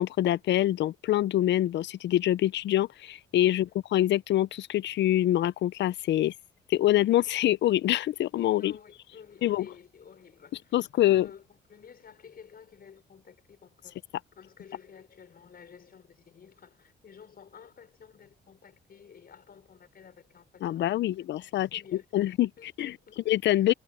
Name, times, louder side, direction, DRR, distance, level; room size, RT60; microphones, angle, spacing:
voice 1, 0.0-6.3 6.7-8.7 9.4-9.6 10.7-11.3 20.6-21.8 22.1-22.5 22.8-22.9 23.3-23.7, left 13 dB, 65° left, 0.5 m, -25 dB
voice 2, 8.6-14.0 14.3-20.9 21.6-23.2 23.5-23.7, left 7 dB, 50° left, 5.7 m, -52 dB
cardioid pair, 90°, 20 cm